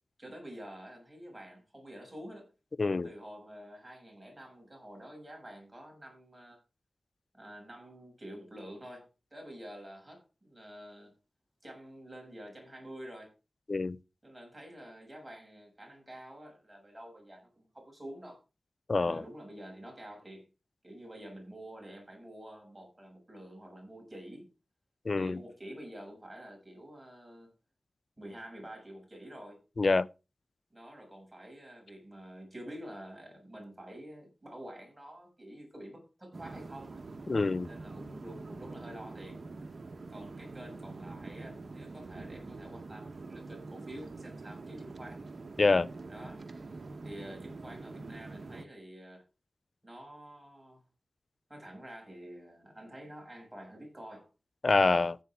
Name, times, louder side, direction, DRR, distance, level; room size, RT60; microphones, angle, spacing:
voice 1, 0.2-2.5 3.0-6.6 7.3-11.1 11.6-13.3 14.2-18.4 19.0-20.5 20.8-24.5 25.2-27.5 28.2-29.6 30.7-37.0 37.7-39.4 40.1-45.2 46.1-46.5 47.0-49.2 49.8-50.8 51.5-54.3, right 1 dB, 20° right, 6.9 m, -48 dB
voice 2, 18.9-19.2 25.1-25.4 29.8-30.1 37.3-37.7 45.6-45.9 54.6-55.2, left 3 dB, 50° left, 0.5 m, -26 dB
sound 1, 36.3-48.6, right 3 dB, 60° right, 1.0 m, -45 dB
15.0 x 8.3 x 3.6 m
wide cardioid pair, 80°, 0 cm